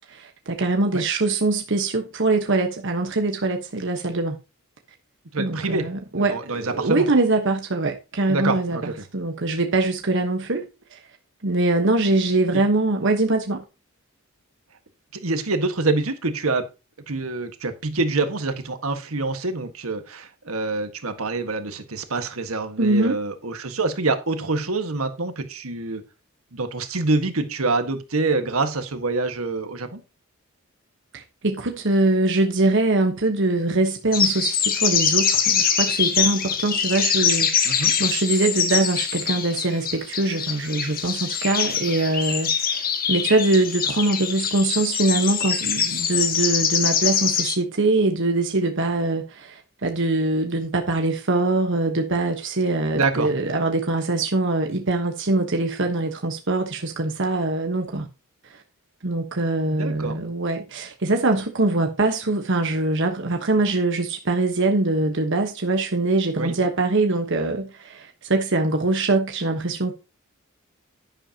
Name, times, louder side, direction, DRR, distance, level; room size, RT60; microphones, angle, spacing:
voice 1, 0.0-4.4 5.4-11.0 11.4-13.6 22.8-23.2 31.1-58.1 59.0-69.9, right 2 dB, 60° right, 1.2 m, -23 dB
voice 2, 5.3-5.9 6.1-7.1 8.3-9.0 15.2-16.7 17.1-26.0 26.5-30.0 37.6-37.9 52.9-53.3 59.7-60.2 66.4-66.5, right 3 dB, 80° right, 1.5 m, -26 dB
sound 1, 34.1-47.6, left 7 dB, 45° left, 1.5 m, -23 dB
11.0 x 10.5 x 2.9 m
head